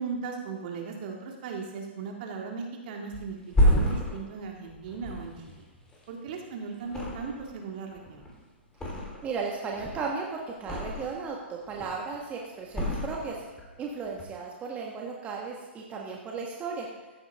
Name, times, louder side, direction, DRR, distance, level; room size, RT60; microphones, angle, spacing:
voice 1, 0.0-5.6 6.1-8.2, right 5 dB, 50° right, 1 dB, 2.0 m, -37 dB
Thump thud, 3.1-6.4 6.8-7.6 7.9-9.4 9.7-11.3 11.6-12.2 12.7-13.7 14.0-14.2, equal, 10° left, 3.4 m, -29 dB
voice 2, 9.2-13.4 13.8-16.9, right 5 dB, 20° right, -1 dB, 1.5 m, -35 dB
14.5 x 9.6 x 3.5 m, 1.2 s
figure-of-eight pair, 120°, 6 cm